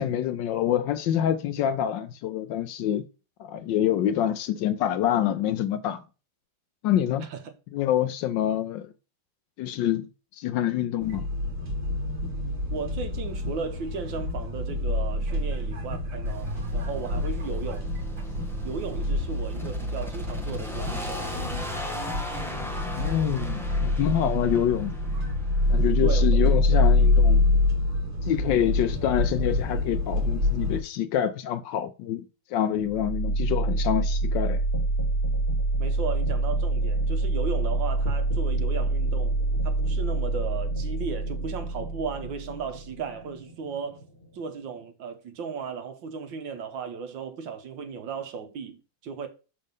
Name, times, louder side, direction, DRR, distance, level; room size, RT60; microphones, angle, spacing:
voice 1, 0.0-3.0 3.4-6.0 6.8-7.3 7.7-8.9 9.6-11.3 22.9-25.0 25.7-27.6 28.2-32.2 32.5-34.6, left 10 dB, 75° left, 1.2 m, -26 dB
voice 2, 7.2-7.5 12.7-17.9 18.6-21.7 26.0-26.3 26.7-26.8 35.8-39.4 39.6-44.0 44.3-49.3, right 5 dB, 70° right, 1.7 m, -35 dB
sound 1, 11.0-30.8, left 2 dB, 50° right, 2.3 m, -26 dB
sound 2, 16.2-25.9, left 1 dB, ahead, 0.8 m, -39 dB
sound 3, 32.8-44.7, right 2 dB, 30° left, 2.2 m, -27 dB
6.3 x 4.3 x 5.3 m
omnidirectional pair, 2.2 m